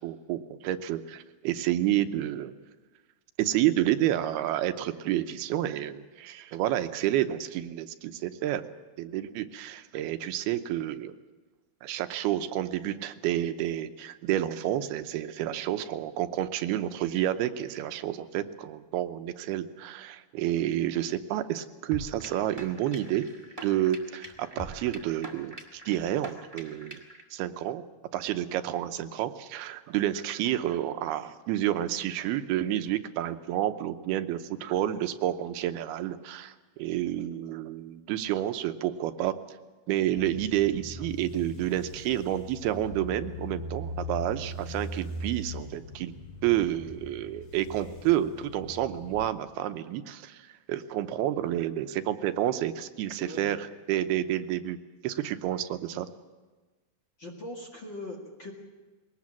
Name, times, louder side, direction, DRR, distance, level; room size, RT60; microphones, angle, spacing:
voice 1, 0.0-2.6 3.4-8.6 9.0-11.2 11.8-23.3 23.6-27.0 27.3-27.8 28.1-39.4 39.9-46.1 46.4-54.8 55.0-56.1, right 12 dB, 85° right, 9 dB, 2.8 m, -30 dB
sound 1, 21.9-27.2, right 1 dB, 20° right, 0.6 m, -44 dB
sound 2, 40.1-49.3, left 1 dB, 55° left, 3.9 m, -40 dB
voice 2, 53.2-53.6 57.2-58.5, left 1 dB, 40° left, 1 dB, 2.1 m, -40 dB
21.5 x 18.5 x 7.3 m, 1.3 s
omnidirectional pair, 4.5 m